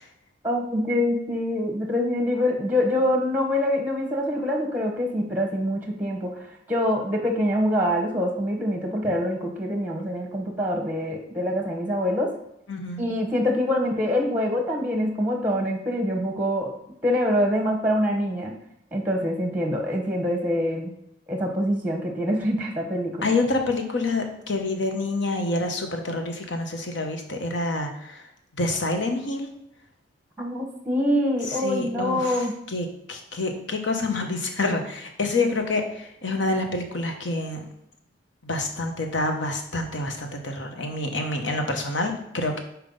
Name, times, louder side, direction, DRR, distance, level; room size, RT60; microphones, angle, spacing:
voice 1, 0.4-12.3 13.0-16.7 17.0-18.5 18.9-20.9 21.3-23.3 30.4-32.5, left 1 dB, 10° right, 2 dB, 1.0 m, -25 dB
voice 2, 12.7-13.0 23.2-28.2 28.6-29.5 31.6-32.4 32.7-37.6 38.4-42.6, left 2 dB, 80° left, 4 dB, 1.1 m, -27 dB
5.4 x 4.6 x 5.4 m, 0.78 s
head